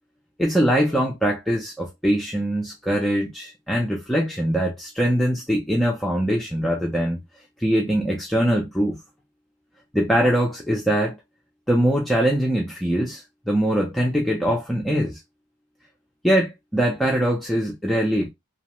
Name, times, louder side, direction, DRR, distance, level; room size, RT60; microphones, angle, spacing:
voice 1, 0.4-7.2 7.6-9.0 9.9-11.2 11.7-15.2 16.2-18.3, equal, ahead, 0.4 m, -22 dB
2.9 x 2.0 x 2.9 m
head